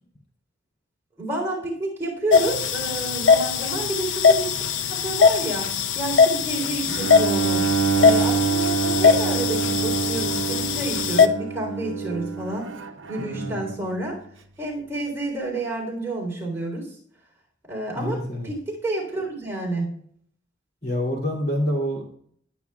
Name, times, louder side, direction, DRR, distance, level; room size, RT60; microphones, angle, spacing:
voice 1, 1.2-4.6 4.9-7.7 8.0-12.7 13.1-14.2 14.6-16.9 17.7-19.9, right 2 dB, 15° right, -2 dB, 3.5 m, -30 dB
sound 1, 2.3-11.3, left 5 dB, 70° left, 0.6 m, -21 dB
Bowed string instrument, 6.9-13.9, right 6 dB, 75° right, 0.8 m, -26 dB
voice 2, 13.2-13.7 17.9-18.5 20.8-22.1, equal, 50° left, -2 dB, 2.7 m, -27 dB
20.0 x 8.3 x 2.4 m, 0.62 s
head